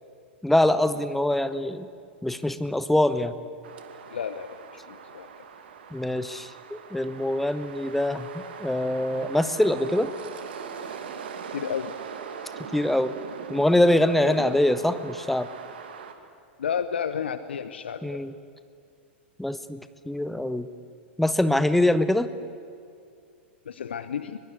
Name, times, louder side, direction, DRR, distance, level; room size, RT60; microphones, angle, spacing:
voice 1, 0.4-1.9 2.2-3.3 5.9-10.1 12.7-13.1 13.5-15.5 18.0-18.3 19.4-19.8 20.1-20.7 21.2-22.3, left 1 dB, 5° left, 13 dB, 1.1 m, -24 dB
sound 1, 3.6-16.1, right 6 dB, 60° right, 2.4 m, -41 dB
voice 2, 4.1-4.6 4.9-5.3 11.5-11.9 14.0-14.6 16.6-18.2 23.7-24.4, left 7 dB, 65° left, 12 dB, 1.0 m, -32 dB
23.0 x 22.5 x 9.8 m, 2.4 s
figure-of-eight pair, 95°, 6 cm